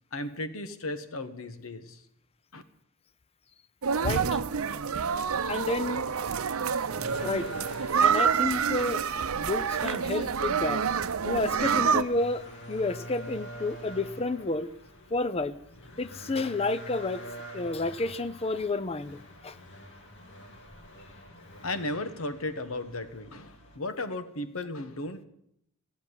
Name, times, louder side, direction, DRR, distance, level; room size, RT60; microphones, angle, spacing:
voice 1, 0.1-2.0 2.5-2.6 21.6-25.2, left 2 dB, 75° left, 10 dB, 1.3 m, -35 dB
sound 1, 3.8-12.0, right 6 dB, 80° right, 0.6 m, -27 dB
voice 2, 4.0-4.4 5.5-6.0 7.2-7.5 8.0-9.0 9.3-10.8 11.2-14.7 15.1-15.6 16.0-17.2 17.5-19.6, left 3 dB, 30° left, 15 dB, 0.6 m, -30 dB
sound 2, 7.0-23.8, equal, 55° left, 2.4 m, -46 dB
16.0 x 7.2 x 9.7 m, 0.76 s
head